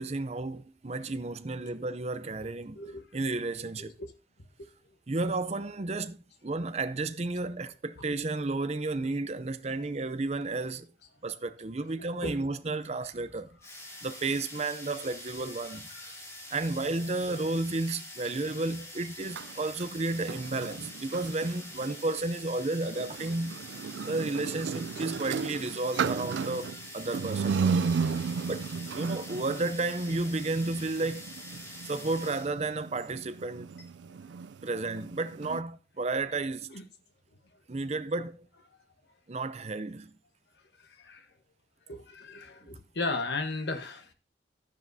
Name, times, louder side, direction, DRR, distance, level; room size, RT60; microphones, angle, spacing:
voice 1, 0.0-2.8 3.1-3.9 5.1-10.9 11.2-13.6 14.0-15.9 16.5-23.6 24.1-27.9 28.2-33.8 34.6-36.7 37.7-38.5 39.3-40.1, right 2 dB, 35° right, 0.6 m, -32 dB
voice 2, 2.7-3.1 4.0-4.1 4.6-4.7 12.2-12.4 16.0-16.1 36.7-36.8 41.0-41.2 41.9-44.1, left 3 dB, 70° left, 1.2 m, -35 dB
sound 1, 13.6-32.6, left 1 dB, 15° left, 2.0 m, -46 dB
sound 2, 19.2-22.0 22.9-35.6, right 5 dB, 80° right, 0.4 m, -35 dB
12.0 x 9.9 x 2.7 m
head